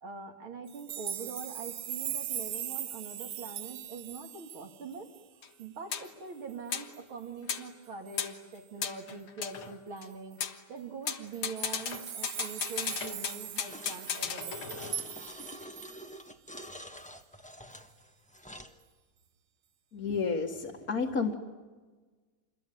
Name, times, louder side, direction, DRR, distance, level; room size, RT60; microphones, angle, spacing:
voice 1, 0.0-5.1 5.6-10.4 10.7-14.9, right 5 dB, 70° right, 3 dB, 3.2 m, -43 dB
sound 1, 0.7-5.2 5.6-5.7 6.1-6.2 6.5-7.0 8.1-8.3 10.0-10.1 10.3-10.4 11.3-16.2 16.6-16.7, right 9 dB, 90° right, 2.0 m, -40 dB
sound 2, 5.4-5.5 5.9-6.1 6.7-6.9 7.5-7.7 8.2-8.4 8.8-10.1 10.4-10.6 11.1-15.2, left 7 dB, 75° left, 2.3 m, -36 dB
sound 3, 13.7-14.0 14.5-18.8, equal, 5° left, 1.0 m, -47 dB
voice 2, 19.9-21.3, left 5 dB, 45° left, -2 dB, 2.1 m, -31 dB
27.5 x 22.0 x 9.4 m, 1.3 s
omnidirectional pair, 2.4 m